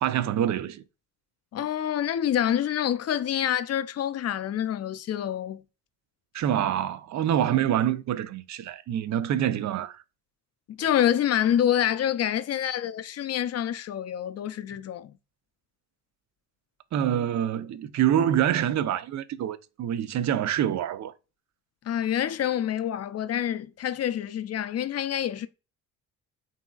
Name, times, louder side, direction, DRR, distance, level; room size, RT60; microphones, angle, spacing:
voice 1, 0.0-0.8 6.3-10.0 16.9-21.1, right 10 dB, 45° right, 0.5 m, -26 dB
voice 2, 1.5-5.6 10.7-15.1 21.8-25.5, left 10 dB, 40° left, 0.4 m, -27 dB
2.8 x 2.7 x 2.3 m
hypercardioid pair, 50°, 41 cm